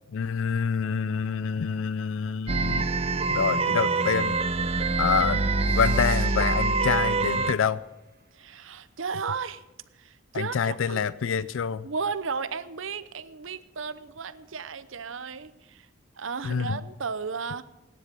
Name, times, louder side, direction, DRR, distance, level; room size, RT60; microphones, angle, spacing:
voice 1, 0.1-2.8 3.3-4.3 5.0-7.8 10.3-11.9 16.4-16.8, left 6 dB, 70° left, 17 dB, 0.4 m, -27 dB
sound 1, 2.5-7.5, right 3 dB, 30° right, 0.5 m, -25 dB
sound 2, 5.5-8.8, right 7 dB, 45° right, 2.6 m, -50 dB
voice 2, 8.3-9.6 10.0-11.0 11.8-15.9 16.2-17.6, right 5 dB, 70° right, 14 dB, 0.8 m, -34 dB
16.5 x 10.0 x 6.8 m, 0.99 s
head